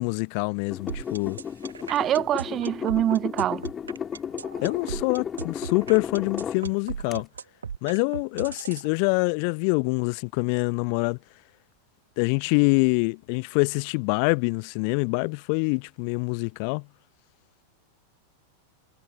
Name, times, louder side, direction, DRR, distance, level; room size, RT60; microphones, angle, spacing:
voice 1, 0.0-1.4 4.6-7.3 7.8-11.2 12.2-16.9, left 39 dB, 45° left, 0.8 m, -25 dB
sound 1, 0.7-6.6 7.1-7.2, left 7 dB, 20° left, 1.8 m, -34 dB
sound 2, 0.9-8.9, right 6 dB, 70° right, 1.5 m, -36 dB
voice 2, 1.9-3.6, right 12 dB, 30° right, 0.7 m, -24 dB
figure-of-eight pair, 90°, 0 cm